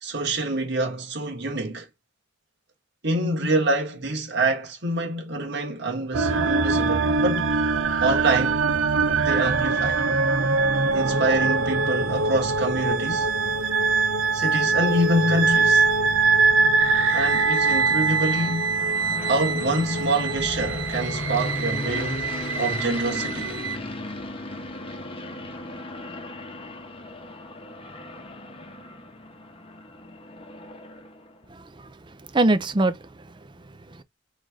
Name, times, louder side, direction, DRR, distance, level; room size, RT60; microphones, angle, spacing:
voice 1, 0.0-1.9 3.0-7.5 8.0-8.7 9.1-10.0 10.9-13.3 14.3-15.9 17.1-18.7 19.3-22.3 22.6-23.6, right 1 dB, 60° right, 1.6 m, -26 dB
sound 1, 6.1-23.8, right 4 dB, 90° right, 0.7 m, -23 dB
sound 2, 14.2-31.4, left 2 dB, 30° left, 0.9 m, -37 dB
voice 2, 31.5-33.4 33.9-34.0, right 2 dB, 25° right, 0.5 m, -25 dB
3.9 x 3.2 x 3.6 m
head